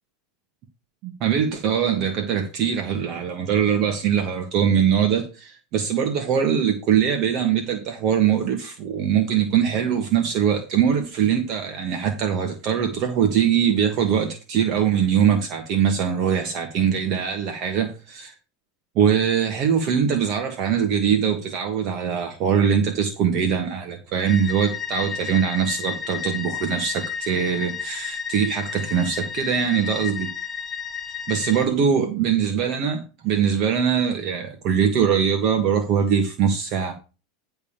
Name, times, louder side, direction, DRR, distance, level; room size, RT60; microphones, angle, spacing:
voice 1, 1.0-18.3 18.9-30.3 31.3-36.9, right 8 dB, 40° right, 4 dB, 1.4 m, -22 dB
sound 1, 24.2-31.6, left 7 dB, 15° left, 0.8 m, -32 dB
10.5 x 3.5 x 7.2 m, 0.33 s
supercardioid pair, 160°, 0 cm